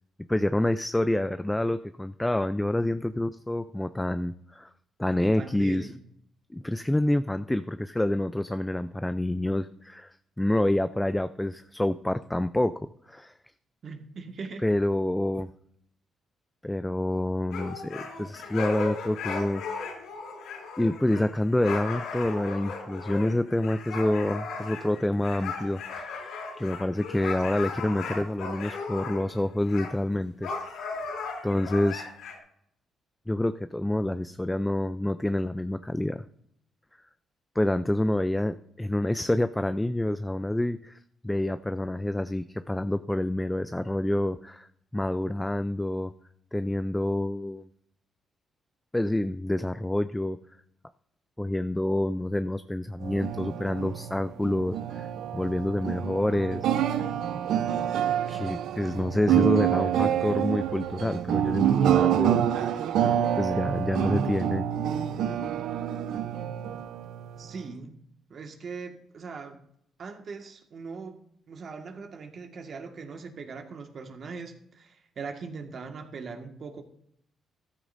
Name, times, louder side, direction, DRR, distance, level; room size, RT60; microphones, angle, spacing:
voice 1, 0.3-4.7 5.0-5.9 6.5-12.8 13.1-13.3 14.6-15.5 16.6-19.6 20.8-25.8 26.1-26.3 26.6-30.5 30.8-31.0 31.4-32.1 33.3-36.2 37.6-41.0 41.2-44.7 44.9-46.1 46.5-47.7 48.9-50.4 51.4-55.1 55.3-56.7 58.3-62.4 63.3-64.7, left 1 dB, 10° left, 11 dB, 0.4 m, -27 dB
voice 2, 5.2-5.9 13.8-14.6 67.4-68.0 68.3-69.6 70.0-71.2 71.5-76.8, right 4 dB, 55° right, 4 dB, 1.7 m, -40 dB
sound 1, 17.5-29.4 29.7-29.9 30.4-32.4, left 4 dB, 90° left, 3.3 m, -36 dB
sound 2, 53.0-67.7, right 10 dB, 80° right, 0.6 m, -27 dB
13.5 x 13.0 x 2.7 m, 0.72 s
cardioid pair, 90°, 0 cm